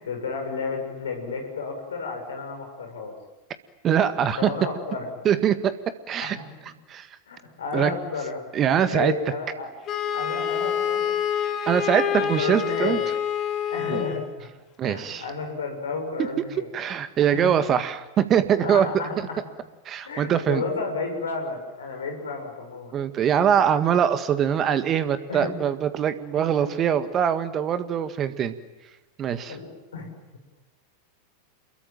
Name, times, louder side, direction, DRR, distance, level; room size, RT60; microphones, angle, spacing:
voice 1, 0.0-3.2 4.4-5.3 6.2-6.4 7.3-8.5 8.9-9.7 10.1-11.2 12.2-13.1 13.7-14.5 14.8-16.7 17.3-17.5 18.6-19.4 20.0-23.0 25.3-25.6 26.3-26.9 29.5-30.1, left 4 dB, 65° left, 4 dB, 7.0 m, -32 dB
voice 2, 3.8-4.5 5.3-5.8 6.1-6.4 6.9-7.1 7.7-7.9 8.5-9.1 11.7-13.0 13.9-14.0 14.8-15.2 16.7-18.9 19.9-20.6 22.9-28.5 29.2-29.6, right 9 dB, 30° right, 12 dB, 1.8 m, -23 dB
Wind instrument woodwind instrument, 9.9-14.3, left 8 dB, 30° left, 2.8 m, -27 dB
28.0 x 22.5 x 9.2 m, 1.1 s
figure-of-eight pair, 90°, 0 cm